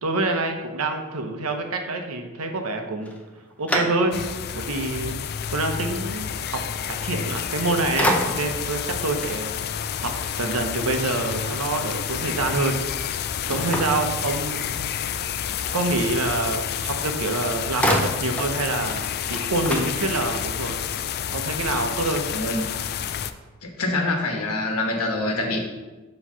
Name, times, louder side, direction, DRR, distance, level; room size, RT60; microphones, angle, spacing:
voice 1, 0.0-3.1 3.6-4.2 4.5-5.2 5.5-6.6 6.9-9.5 10.0-13.2 13.5-15.2 15.7-20.8 21.3-22.2, right 2 dB, 80° right, 4 dB, 0.8 m, -26 dB
sound 1, 3.0-4.5 5.0-5.1 7.3-7.6 8.0-8.7 13.5-14.8 16.9-17.0 17.3-18.6 18.9-19.0 19.3-20.6, equal, 5° left, 0.6 m, -28 dB
sound 2, 4.1-23.3, left 8 dB, 50° left, 0.3 m, -29 dB
voice 2, 22.3-22.7 23.6-25.6, left 2 dB, 90° left, 2 dB, 1.2 m, -25 dB
7.4 x 3.2 x 5.5 m, 1.2 s
head